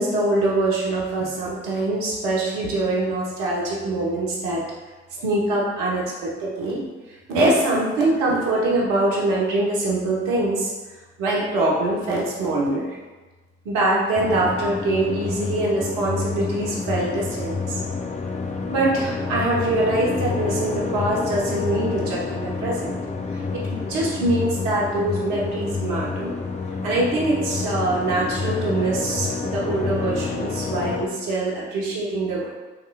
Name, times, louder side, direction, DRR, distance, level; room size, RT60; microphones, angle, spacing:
voice 1, 0.0-4.6 5.2-6.8 7.3-10.7 11.2-12.9 13.6-17.7 18.7-23.0 23.3-26.3 26.8-32.5, right 2 dB, 65° right, -4 dB, 1.1 m, -23 dB
sound 1, 14.2-31.1, left 4 dB, 20° left, 0.6 m, -28 dB
6.3 x 3.1 x 2.3 m, 1.2 s
hypercardioid pair, 50°, 33 cm